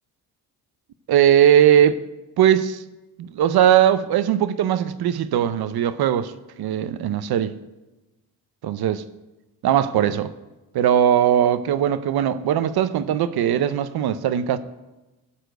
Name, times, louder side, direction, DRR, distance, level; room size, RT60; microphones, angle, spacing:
voice 1, 1.1-2.0 2.4-2.8 3.2-6.3 6.6-7.5 8.6-9.0 9.6-10.3 10.7-14.6, right 10 dB, 75° right, 0.6 m, -19 dB
12.5 x 4.3 x 7.9 m
cardioid pair, 100°, 38 cm